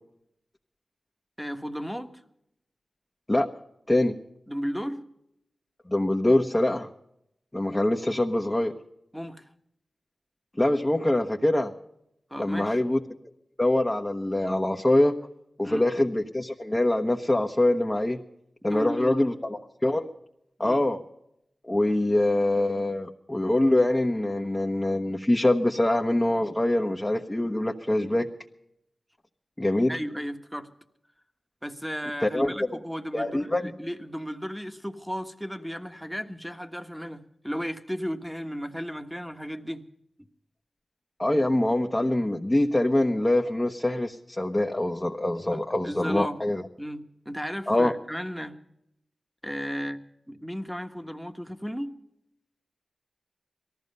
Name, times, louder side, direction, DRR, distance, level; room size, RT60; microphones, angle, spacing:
voice 1, 1.4-2.2 4.5-5.0 9.1-9.5 12.3-12.8 15.6-15.9 18.7-19.1 20.6-20.8 29.9-30.7 31.6-39.8 40.2-40.3 45.5-46.4 46.8-48.6 49.4-50.0 50.3-51.9, equal, 5° right, 7 dB, 1.3 m, -34 dB
voice 2, 5.9-6.9 7.5-8.7 10.6-11.7 12.4-13.0 13.6-15.2 15.6-18.2 18.6-20.1 20.6-21.0 21.7-28.3 29.6-30.0 32.2-32.5 33.1-33.7 41.2-46.6 47.7-47.9, left 1 dB, 20° left, 1 dB, 1.1 m, -24 dB
18.5 x 14.0 x 5.4 m, 0.78 s
cardioid pair, 45°, 0 cm